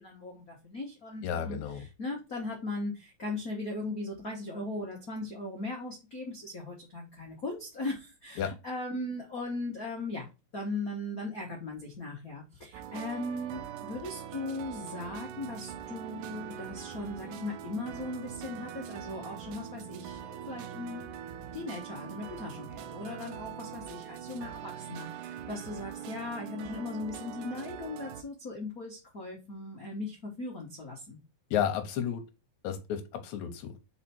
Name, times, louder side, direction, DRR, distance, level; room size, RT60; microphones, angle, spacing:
voice 1, 0.0-10.3 10.5-21.1 21.5-31.2, left 2 dB, 85° left, 0.7 m, -38 dB
voice 2, 1.2-1.8 8.4-8.5 31.5-32.2 32.6-33.7, left 9 dB, 70° left, 1.9 m, -32 dB
sound 1, 12.7-28.2, right 9 dB, 75° right, 2.2 m, -42 dB
5.0 x 4.4 x 4.3 m
omnidirectional pair, 4.2 m